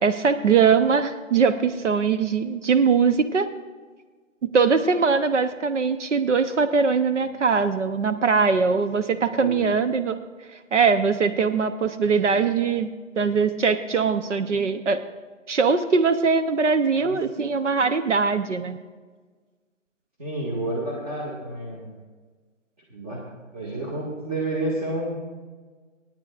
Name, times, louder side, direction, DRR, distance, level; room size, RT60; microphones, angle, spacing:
voice 1, 0.0-3.5 4.5-10.2 10.7-12.9 13.2-15.0 15.5-18.8, right 5 dB, 65° right, 9 dB, 0.8 m, -21 dB
voice 2, 9.2-9.7 17.0-17.1 20.2-21.9 22.9-23.3 23.5-25.2, right 1 dB, 30° right, -5 dB, 1.9 m, -30 dB
26.0 x 9.1 x 2.5 m, 1.4 s
hypercardioid pair, 170°, 39 cm